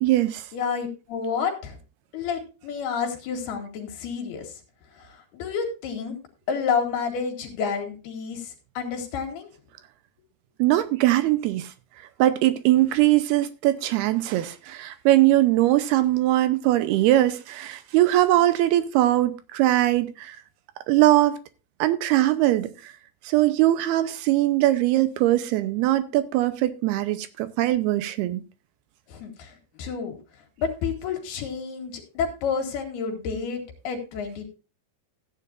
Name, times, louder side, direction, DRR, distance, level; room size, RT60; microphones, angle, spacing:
voice 1, 0.0-0.5 10.6-11.7 12.2-20.4 20.9-21.4 21.8-22.9 23.2-28.4, right 15 dB, 80° right, 2.5 m, -21 dB
voice 2, 0.5-1.8 2.1-4.6 5.0-6.2 6.5-9.5 29.1-30.2 30.6-34.5, left 6 dB, 65° left, 3.6 m, -30 dB
15.5 x 9.6 x 2.5 m
omnidirectional pair, 5.1 m